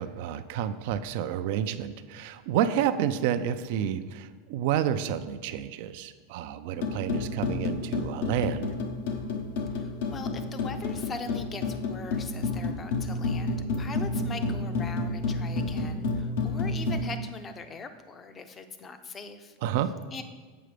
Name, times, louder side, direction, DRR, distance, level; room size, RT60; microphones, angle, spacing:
voice 1, 0.0-8.7 19.6-19.9, right 10 dB, 60° right, 11 dB, 0.4 m, -29 dB
sound 1, 6.8-17.0, left 3 dB, 75° left, 0.9 m, -30 dB
voice 2, 9.7-19.6 20.1-20.2, left 4 dB, 25° left, 9 dB, 0.6 m, -41 dB
7.8 x 5.0 x 5.0 m, 1.4 s
supercardioid pair, 135°, 0 cm